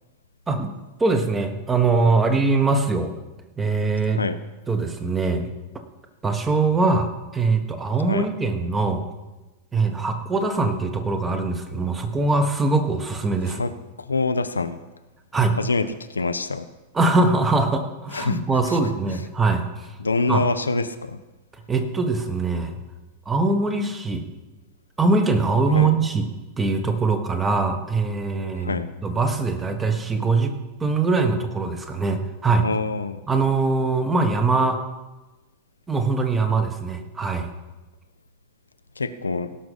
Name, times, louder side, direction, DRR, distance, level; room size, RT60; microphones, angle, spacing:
voice 1, 1.0-3.1 3.6-4.2 4.7-5.5 6.2-9.0 9.7-13.7 15.3-15.6 16.9-19.9 20.3-20.5 21.7-22.8 23.2-24.2 25.0-26.2 26.6-30.5 30.8-32.7 33.3-34.8 35.9-37.5, right 3 dB, 15° right, 6 dB, 1.4 m, -22 dB
voice 2, 14.0-14.8 15.6-16.7 18.1-18.4 18.7-18.8 20.0-21.2 25.7-25.9 28.5-28.9 32.6-33.2 39.0-39.6, left 3 dB, 80° left, 11 dB, 0.6 m, -25 dB
17.0 x 6.1 x 5.4 m, 1.1 s
figure-of-eight pair, 90°, 0 cm